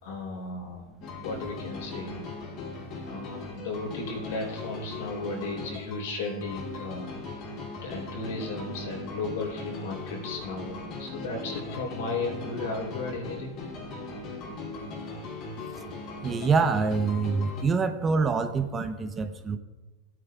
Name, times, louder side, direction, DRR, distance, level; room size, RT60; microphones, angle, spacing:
voice 1, 0.0-0.9 1.2-2.2 3.0-7.1 7.8-13.6, left 3 dB, 75° left, 0 dB, 4.0 m, -35 dB
sound 1, 1.0-17.6, left 3 dB, 45° left, 2.9 m, -39 dB
voice 2, 16.2-19.6, right 4 dB, 25° right, 8 dB, 0.8 m, -25 dB
17.5 x 9.4 x 2.4 m, 1.1 s
hypercardioid pair, 110°, 0 cm